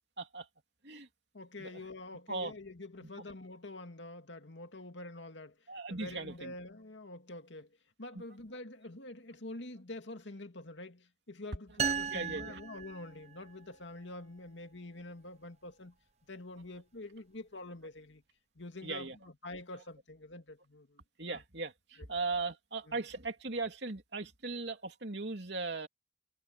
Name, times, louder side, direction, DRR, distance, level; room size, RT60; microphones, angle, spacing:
voice 1, 0.2-0.5 0.8-1.1 1.6-1.8 2.3-2.5 5.7-6.5 8.1-8.2 12.1-12.6 18.8-19.2 21.2-25.9, right 3 dB, 65° right, 3.1 m, -38 dB
voice 2, 1.3-5.5 5.9-7.7 8.0-15.9 16.3-18.2 18.6-21.4 22.9-23.0, left 2 dB, 80° left, 2.3 m, -46 dB
sound 1, 11.8-13.6, right 6 dB, 35° right, 0.7 m, -36 dB
head